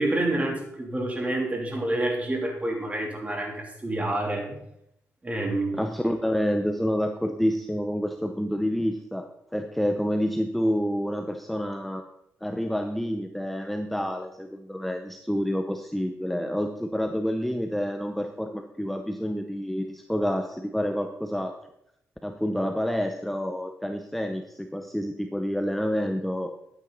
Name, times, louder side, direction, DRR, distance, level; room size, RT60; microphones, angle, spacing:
voice 1, 0.0-4.6 5.2-5.7, right 1 dB, 25° right, 1 dB, 3.1 m, -28 dB
voice 2, 5.7-12.0 12.4-21.6 22.2-26.5, equal, 5° left, 6 dB, 0.8 m, -28 dB
11.5 x 9.1 x 4.1 m, 0.79 s
cardioid pair, 80°, 6 cm